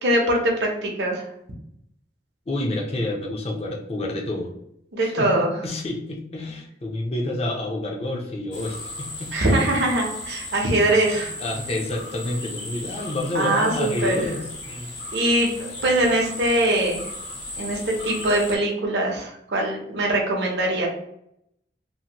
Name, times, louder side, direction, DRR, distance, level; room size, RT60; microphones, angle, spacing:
voice 1, 0.0-1.2 4.9-5.5 9.3-11.3 13.3-14.2 15.1-17.1 17.6-20.9, right 1 dB, 65° right, -1 dB, 0.7 m, -22 dB
voice 2, 2.5-4.5 5.0-9.4 11.4-15.0, left 1 dB, 35° left, 1 dB, 0.5 m, -29 dB
sound 1, 8.5-18.6, left 2 dB, 85° left, 1.1 m, -36 dB
2.8 x 2.5 x 2.8 m, 0.75 s
head